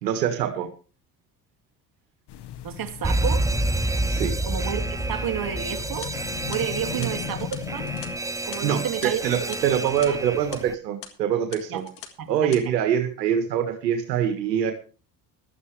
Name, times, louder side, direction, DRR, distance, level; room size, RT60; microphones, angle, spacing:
voice 1, 0.0-0.7 4.1-4.4 6.9-7.1 8.6-11.8 12.3-14.7, right 9 dB, 90° right, 6 dB, 1.6 m, -24 dB
sound 1, 2.3-8.2, left 10 dB, 55° left, 1.5 m, -38 dB
voice 2, 2.6-3.5 4.5-4.8 5.1-6.1 6.5-7.9 8.4-9.6 10.1-10.2 11.7-11.8 12.2-12.6, right 10 dB, 45° right, 4 dB, 2.3 m, -31 dB
Alarm, 3.0-10.7, right 2 dB, 5° right, 0.7 m, -28 dB
sound 2, 5.8-10.1 10.4-10.6 11.0-11.1 11.5-12.1 12.4-12.6, left 12 dB, 85° left, 1.8 m, -43 dB
15.5 x 12.0 x 3.2 m, 0.35 s
hypercardioid pair, 65°, 48 cm